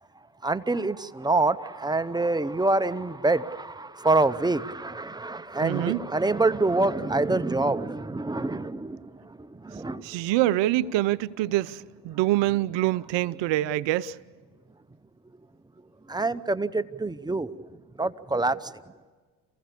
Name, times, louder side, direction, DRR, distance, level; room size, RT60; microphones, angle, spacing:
voice 1, 0.4-10.2 16.1-18.8, right 2 dB, 10° right, 0.8 m, -26 dB
voice 2, 5.6-6.0 10.0-14.2, right 15 dB, 60° right, 0.8 m, -25 dB
28.5 x 16.0 x 8.4 m
hypercardioid pair, 75°, 49 cm